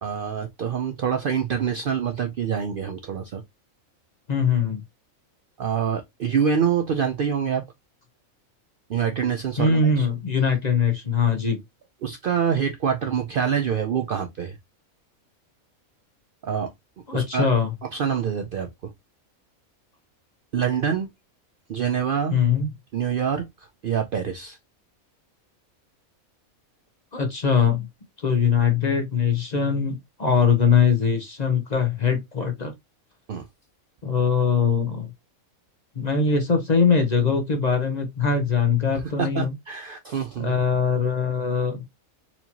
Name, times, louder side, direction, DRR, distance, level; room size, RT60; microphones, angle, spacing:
voice 1, 0.0-3.4 5.6-7.6 8.9-10.1 12.0-14.6 16.4-16.7 17.1-17.5 17.9-18.9 20.5-21.1 21.7-22.4 22.9-23.4 23.8-24.6 33.3-33.5 39.2-40.6, right 7 dB, 90° right, 0.4 m, -26 dB
voice 2, 4.3-4.8 9.6-11.6 17.1-17.7 22.3-22.7 27.1-27.9 28.2-32.7 34.0-35.1 36.0-39.5 40.4-41.8, left 6 dB, 40° left, 0.6 m, -22 dB
4.3 x 2.8 x 2.7 m
omnidirectional pair, 1.5 m